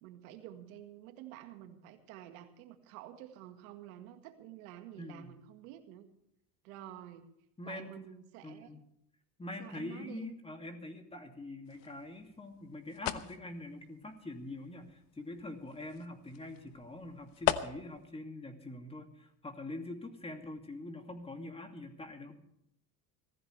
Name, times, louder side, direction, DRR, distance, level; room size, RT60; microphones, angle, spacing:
voice 1, 0.0-6.1 6.6-7.3 7.6-8.7 9.6-10.3, right 12 dB, 90° right, 7 dB, 1.9 m, -49 dB
voice 2, 5.0-5.4 7.6-7.9 8.4-8.8 9.4-22.4, left 2 dB, 15° left, 5 dB, 2.6 m, -44 dB
sound 1, 11.7-18.1, left 12 dB, 55° left, 1.1 m, -40 dB
23.0 x 15.0 x 3.4 m, 0.77 s
supercardioid pair, 120°, 41 cm